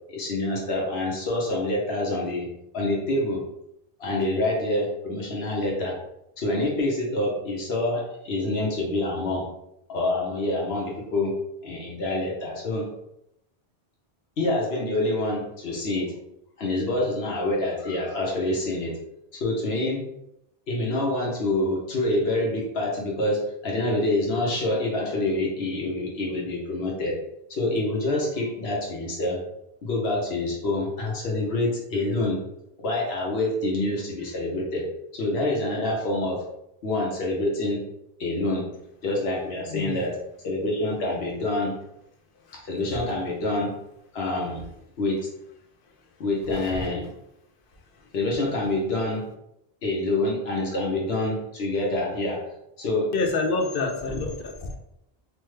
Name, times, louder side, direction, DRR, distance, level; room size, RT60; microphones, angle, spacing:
voice 1, 0.1-2.5 2.7-3.4 4.0-6.0 6.4-9.5 9.9-11.3 11.6-12.9 14.4-16.1 16.6-19.0 19.3-20.0 20.7-27.2 27.5-29.4 29.8-32.4 32.8-34.9 35.1-36.4 36.8-37.8 38.2-38.6 39.0-40.2 40.4-41.8 42.5-43.8 44.1-44.6 45.0-45.2 46.2-47.1 48.1-49.2 49.8-52.4 52.8-53.1, left 2 dB, 80° left, -2 dB, 1.1 m, -26 dB
voice 2, 53.1-54.8, left 3 dB, 65° left, 3 dB, 0.7 m, -27 dB
3.2 x 2.1 x 3.1 m, 0.82 s
omnidirectional pair, 1.0 m